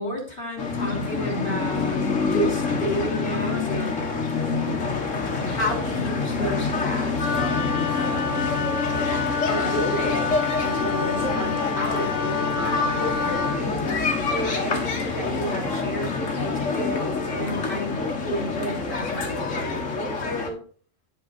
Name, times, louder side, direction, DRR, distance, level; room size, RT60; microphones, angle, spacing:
voice 1, 0.0-4.0 5.2-8.8 9.5-13.9 14.3-20.6, equal, 45° left, 0 dB, 3.3 m, -31 dB
sound 1, 0.6-20.5, left 4 dB, 85° left, 1.8 m, -27 dB
Wind instrument woodwind instrument, 7.2-13.6, left 5 dB, 60° left, 1.2 m, -28 dB
10.5 x 4.7 x 4.2 m, 0.43 s
omnidirectional pair, 1.3 m